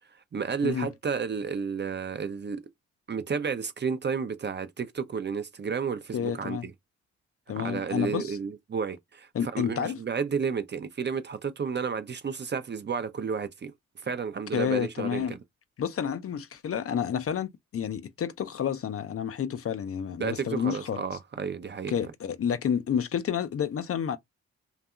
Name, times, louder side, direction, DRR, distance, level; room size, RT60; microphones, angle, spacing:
voice 1, 0.3-2.6 3.1-6.7 7.5-13.7 14.0-15.4 20.2-21.9, right 6 dB, 35° right, 0.5 m, -32 dB
voice 2, 6.1-6.7 7.5-8.4 9.3-10.0 14.5-15.4 15.8-21.0 21.9-24.2, left 8 dB, 45° left, 0.5 m, -30 dB
2.7 x 2.3 x 2.3 m
hypercardioid pair, 45°, 34 cm